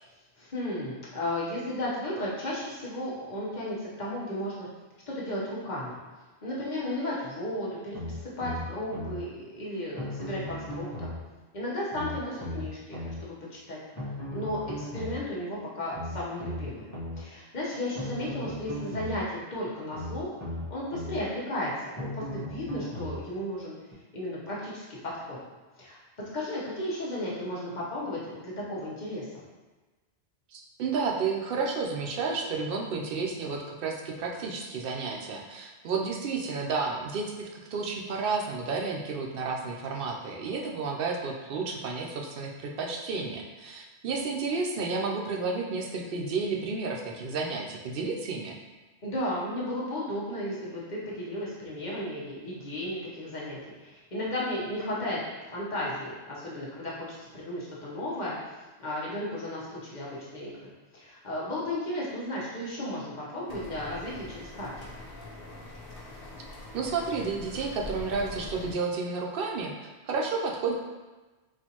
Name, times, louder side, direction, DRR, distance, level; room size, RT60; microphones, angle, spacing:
voice 1, 0.4-4.7 5.1-5.9 6.4-11.1 11.5-13.8 14.3-16.9 17.2-21.7 22.0-23.7 24.1-24.9 25.1-25.4 25.8-26.0 26.3-29.3 49.0-55.2 55.5-64.7, left 1 dB, 45° left, -6 dB, 1.1 m, -34 dB
sound 1, 7.9-9.2 10.0-11.2 11.9-13.2 14.0-15.2 15.9-17.2 18.0-19.2 19.9-21.2 22.0-23.2 23.9-24.0, left 1 dB, 15° left, 0.9 m, -37 dB
voice 2, 30.5-48.6 66.7-70.7, right 4 dB, 65° right, 1 dB, 0.7 m, -31 dB
sound 2, 63.5-68.7, left 1 dB, 90° left, 1.0 m, -43 dB
4.3 x 2.5 x 2.8 m, 1.2 s
omnidirectional pair, 1.1 m